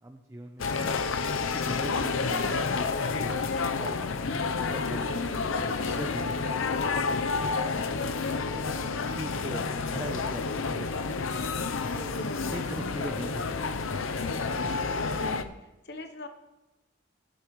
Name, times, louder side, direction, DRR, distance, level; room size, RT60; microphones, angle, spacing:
voice 1, 0.0-0.9 1.5-2.6 2.9-4.2 4.7-8.0 8.5-12.1 12.5-13.9, right 1 dB, 15° right, 3 dB, 0.6 m, -42 dB
sound 1, 0.6-15.4, left 4 dB, 85° left, 0.6 m, -30 dB
voice 2, 11.9-13.0 15.1-16.3, left 2 dB, 50° left, 7 dB, 0.9 m, -42 dB
16.5 x 10.5 x 3.1 m, 1.0 s
head